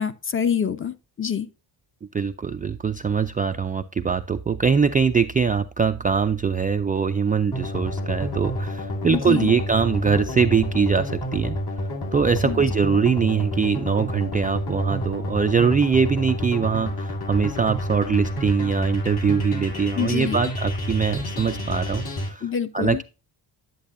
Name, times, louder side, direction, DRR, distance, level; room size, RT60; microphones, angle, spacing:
voice 1, 0.0-1.5 9.1-9.5 12.4-12.6 19.9-20.4 22.4-23.0, left 7 dB, 30° left, 0.7 m, -26 dB
voice 2, 2.1-11.6 12.1-22.5 22.7-23.0, right 6 dB, 20° right, 0.3 m, -22 dB
sound 1, 7.5-22.3, left 1 dB, 60° left, 2.9 m, -29 dB
10.5 x 7.4 x 2.5 m
cardioid pair, 120°, 43 cm